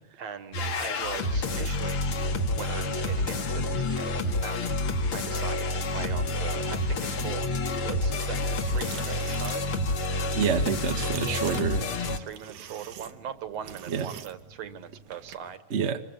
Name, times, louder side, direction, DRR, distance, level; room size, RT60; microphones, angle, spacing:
voice 1, 0.2-2.0 2.5-4.6 5.1-7.5 7.8-9.6 11.3-11.7 12.0-15.6, right 8 dB, 65° right, 11 dB, 2.5 m, -40 dB
sound 1, 0.5-12.2, left 2 dB, 50° left, 2.3 m, -28 dB
sound 2, 8.6-15.6, right 9 dB, 90° right, 2.7 m, -46 dB
voice 2, 10.3-11.8 13.9-14.1 15.7-16.0, right 7 dB, 45° right, 7 dB, 0.9 m, -27 dB
25.5 x 22.5 x 8.7 m, 0.69 s
omnidirectional pair, 3.3 m